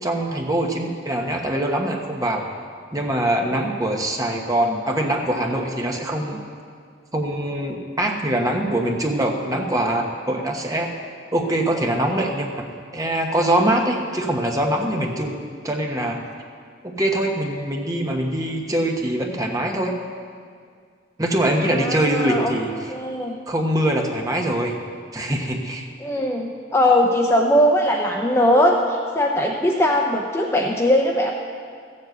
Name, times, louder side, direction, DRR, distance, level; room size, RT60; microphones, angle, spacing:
voice 1, 0.0-2.5 2.9-6.4 7.1-10.9 11.3-12.5 12.9-16.2 16.8-19.9 21.2-22.9 23.5-24.7 25.1-25.9, right 1 dB, 20° right, 1 dB, 1.2 m, -23 dB
voice 2, 21.7-22.5 22.9-23.4 26.0-31.3, left 1 dB, 15° left, 1 dB, 0.6 m, -20 dB
14.5 x 7.6 x 8.0 m, 2.1 s
head